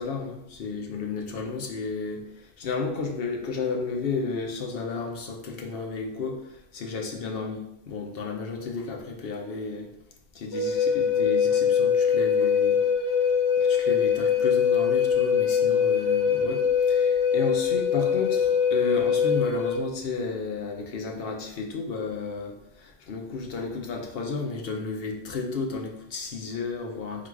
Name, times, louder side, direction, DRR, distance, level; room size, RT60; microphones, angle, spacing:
voice 1, 0.0-9.9 10.3-12.8 13.6-27.3, left 4 dB, 55° left, 1 dB, 0.8 m, -32 dB
Wind instrument woodwind instrument, 10.5-19.8, left 7 dB, 40° left, 0.4 m, -23 dB
3.9 x 2.4 x 4.6 m, 0.83 s
omnidirectional pair, 1.3 m